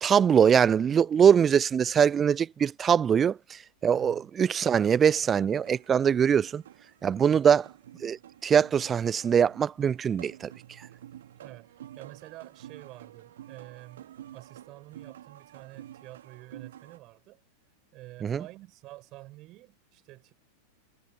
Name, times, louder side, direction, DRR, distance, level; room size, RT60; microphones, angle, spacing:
voice 1, 0.0-6.6 7.0-7.6 8.0-10.5 18.2-18.4, right 7 dB, 20° right, 0.5 m, -23 dB
voice 2, 3.9-4.3 11.3-11.7 12.0-17.4 17.9-20.3, right 18 dB, 40° right, 6.6 m, -48 dB
sound 1, 5.4-17.0, right 11 dB, 60° right, 2.4 m, -49 dB
figure-of-eight pair, 90°, 0 cm